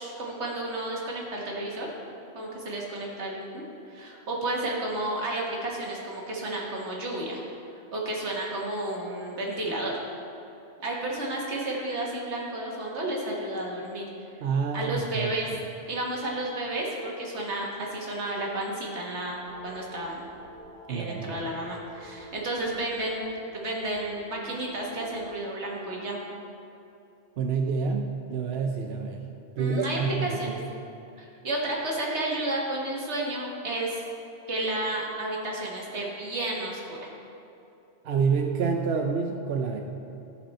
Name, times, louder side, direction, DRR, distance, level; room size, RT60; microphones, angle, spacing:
voice 1, 0.0-1.9 2.3-7.4 7.7-10.0 10.8-14.0 14.7-15.5 15.9-20.2 20.9-26.2 29.6-30.6 31.2-34.0 34.5-37.1, right 1 dB, 90° right, -3 dB, 1.8 m, -32 dB
voice 2, 14.4-15.3 20.9-21.3 27.4-29.2 29.6-30.4 38.0-39.8, right 5 dB, 70° right, 3 dB, 0.8 m, -27 dB
sound 1, 19.2-25.3, equal, 5° left, 1.0 m, -50 dB
14.0 x 5.3 x 4.2 m, 2.8 s
omnidirectional pair, 1.1 m